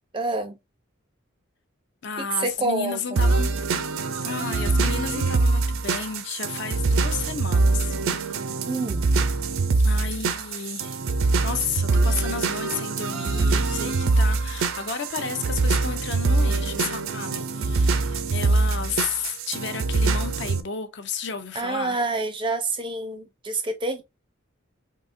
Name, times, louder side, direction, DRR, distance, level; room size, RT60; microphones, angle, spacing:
voice 1, 0.1-0.6 2.2-3.2 8.6-9.1 21.5-24.0, right 3 dB, 25° right, 0.4 m, -27 dB
voice 2, 2.0-3.5 4.2-7.9 9.8-11.0 11.4-22.0, left 6 dB, 55° left, 0.6 m, -32 dB
sound 1, 3.2-20.6, right 3 dB, 80° right, 0.5 m, -24 dB
3.8 x 2.8 x 2.5 m
head